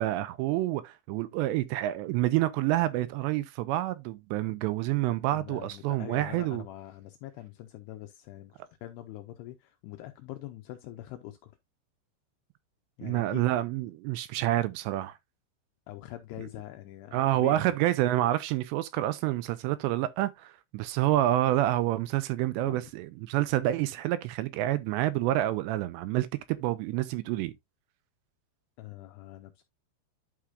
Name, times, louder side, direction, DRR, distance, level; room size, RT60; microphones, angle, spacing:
voice 1, 0.0-6.6 13.0-15.2 17.1-26.3 26.6-27.5, right 15 dB, 80° right, 2.6 m, -28 dB
voice 2, 5.3-11.5 13.0-13.4 15.9-17.7 22.6-22.9 28.8-29.6, left 14 dB, 80° left, 2.5 m, -44 dB
11.5 x 4.8 x 2.4 m
omnidirectional pair, 5.3 m